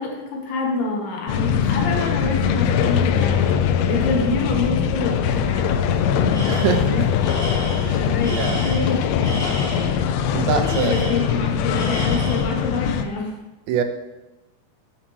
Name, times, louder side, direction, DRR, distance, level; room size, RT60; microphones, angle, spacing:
voice 1, 0.0-3.5 3.9-6.1 6.8-7.1 8.1-9.1 10.3-13.3, left 3 dB, 65° left, -1 dB, 3.0 m, -27 dB
sound 1, 1.3-13.0, left 8 dB, 85° left, 2.9 m, -21 dB
Tools, 6.3-6.9 7.2-10.0 10.6-11.4 11.7-12.6, equal, 5° left, 0.7 m, -32 dB
voice 2, 6.5-7.1 7.8-8.6 10.3-11.3 13.7-13.8, right 7 dB, 80° right, 6 dB, 2.7 m, -24 dB
13.0 x 7.4 x 3.2 m, 1.0 s
omnidirectional pair, 5.3 m